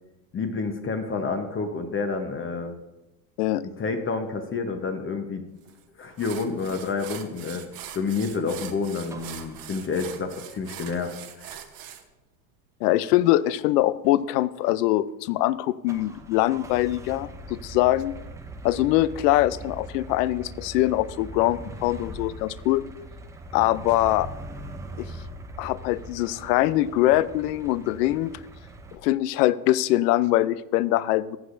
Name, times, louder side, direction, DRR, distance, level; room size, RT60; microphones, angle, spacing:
voice 1, 0.3-2.8 3.8-5.4 6.0-7.6 7.9-11.9, left 4 dB, 25° left, 6 dB, 0.9 m, -29 dB
sound 1, 5.7-5.8 6.2-12.0, right 10 dB, 45° right, 1.1 m, -42 dB
sound 2, 9.0-10.4 15.9-29.0, right 1 dB, 5° right, 0.3 m, -41 dB
voice 2, 12.8-18.1 18.6-22.8 23.5-24.3 25.0-25.1 25.6-28.3 28.9-31.4, left 15 dB, 70° left, 18 dB, 0.6 m, -23 dB
15.0 x 7.9 x 2.6 m, 0.99 s
hypercardioid pair, 100°, 50 cm